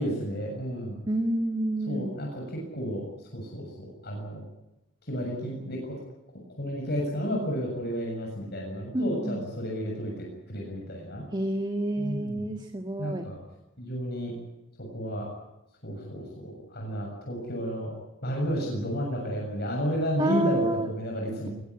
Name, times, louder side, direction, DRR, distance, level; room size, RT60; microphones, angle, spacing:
voice 1, 0.0-1.0 1.9-2.4 2.7-3.0 3.3-4.4 5.1-5.8 6.6-11.2 12.0-12.5 13.0-13.4 13.8-14.3 14.9-15.3 15.8-17.9 18.2-21.5, equal, 55° left, 0 dB, 7.3 m, -32 dB
voice 2, 1.1-2.2 8.9-9.4 11.3-13.3 20.2-20.9, right 1 dB, 25° right, 5 dB, 1.6 m, -29 dB
22.5 x 21.0 x 9.7 m, 0.94 s
head